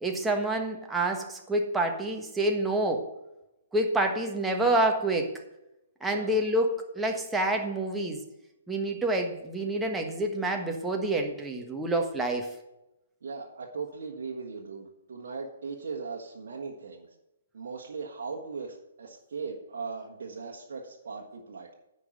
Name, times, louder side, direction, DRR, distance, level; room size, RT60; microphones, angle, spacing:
voice 1, 0.0-3.1 3.7-5.4 6.0-8.2 8.7-12.5, right 1 dB, 10° right, 2 dB, 1.4 m, -28 dB
voice 2, 13.2-17.1 17.5-21.7, right 5 dB, 60° right, 0 dB, 1.4 m, -38 dB
9.8 x 5.4 x 7.6 m, 0.92 s
figure-of-eight pair, 130°, 0 cm